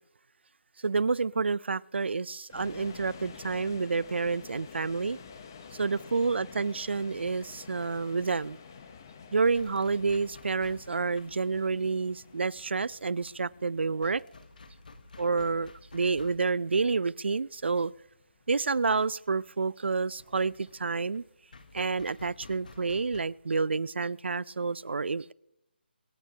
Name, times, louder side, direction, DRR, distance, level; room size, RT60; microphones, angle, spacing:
voice 1, 0.8-5.2 5.8-8.6 9.3-14.2 15.2-17.9 18.5-21.2 21.7-25.3, right 4 dB, 80° right, 0.5 m, -29 dB
sound 1, 2.5-19.5, left 6 dB, 20° left, 0.8 m, -50 dB
sound 2, 8.9-23.2, left 3 dB, 50° left, 1.2 m, -54 dB
26.5 x 12.5 x 2.8 m
hypercardioid pair, 175°, 6 cm